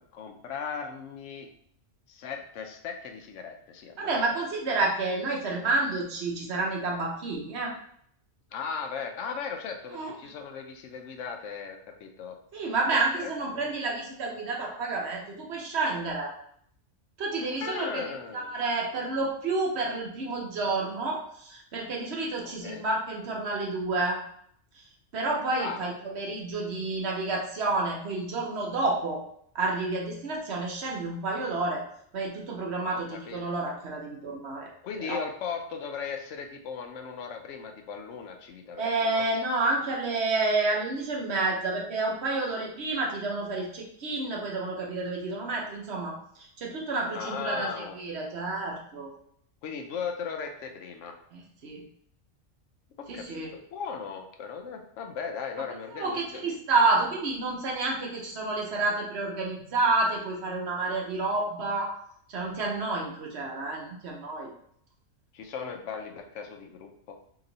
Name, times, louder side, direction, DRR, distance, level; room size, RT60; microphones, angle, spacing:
voice 1, 0.1-1.5 2.1-4.4 8.5-12.4 13.2-13.7 17.6-18.5 22.4-22.8 25.6-25.8 32.9-33.4 34.8-39.2 47.1-48.0 49.6-51.2 53.0-56.5 65.3-67.2, left 6 dB, 75° left, 4 dB, 0.9 m, -37 dB
voice 2, 4.0-7.7 9.9-10.1 12.5-16.3 17.2-24.2 25.1-29.2 29.5-31.8 32.1-34.7 35.0-35.2 38.8-49.1 51.3-51.8 53.1-53.5 55.9-62.0 62.3-64.5, right 3 dB, 60° right, -1 dB, 1.0 m, -29 dB
2.9 x 2.9 x 3.8 m, 0.66 s
omnidirectional pair, 1.3 m